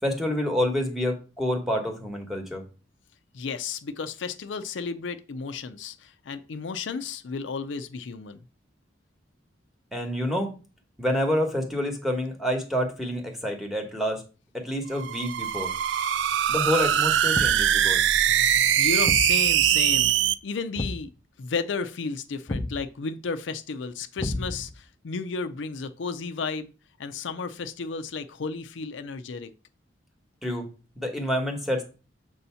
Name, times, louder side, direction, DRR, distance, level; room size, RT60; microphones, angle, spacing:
voice 1, 0.0-2.6 9.9-10.5 11.0-14.2 14.5-15.7 16.5-18.0 30.4-30.7 31.0-31.8, equal, ahead, 2 dB, 1.1 m, -28 dB
voice 2, 3.3-8.4 18.8-20.1 20.4-21.1 21.4-26.7 27.0-29.5, left 4 dB, 75° left, 9 dB, 0.5 m, -33 dB
sound 1, 14.9-20.3, right 10 dB, 75° right, 0.3 m, -22 dB
Thump thud, 17.3-17.8 19.1-19.4 20.8-21.1 22.5-22.8 24.2-24.8, left 1 dB, 25° left, 0.4 m, -31 dB
6.9 x 2.7 x 5.6 m, 0.34 s
head